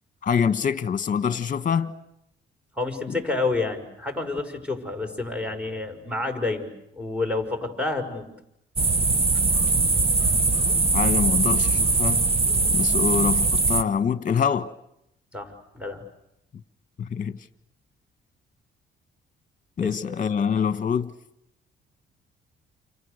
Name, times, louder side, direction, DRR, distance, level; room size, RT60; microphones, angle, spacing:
voice 1, 0.2-1.9 3.1-3.2 10.9-12.3 12.7-14.7 17.0-17.4 19.8-21.1, left 7 dB, 40° left, 1.6 m, -25 dB
voice 2, 2.8-8.3 15.3-16.0 19.8-20.2, left 3 dB, 5° right, 5.8 m, -29 dB
sound 1, 8.8-13.8, right 3 dB, 30° right, 1.4 m, -21 dB
29.5 x 29.0 x 6.7 m
cardioid pair, 90°, 20 cm